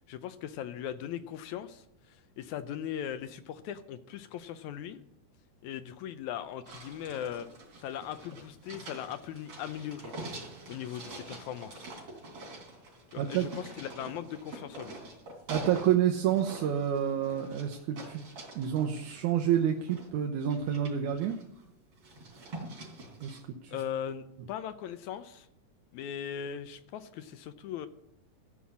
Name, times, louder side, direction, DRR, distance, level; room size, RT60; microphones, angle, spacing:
voice 1, 0.1-5.0 5.6-7.5 7.8-10.1 10.7-11.9 13.1-15.0 23.7-25.5 25.9-27.9, left 9 dB, 75° left, 11 dB, 1.9 m, -39 dB
sound 1, 6.6-15.9 16.2-20.1 20.4-21.6 22.0-23.4, right 2 dB, 45° right, 4.0 m, -46 dB
voice 2, 13.2-13.5 15.5-18.2 18.6-21.4 23.2-23.4 23.6-23.8, right 9 dB, 75° right, 2 dB, 2.2 m, -28 dB
14.5 x 5.6 x 8.5 m, 0.81 s
omnidirectional pair, 3.7 m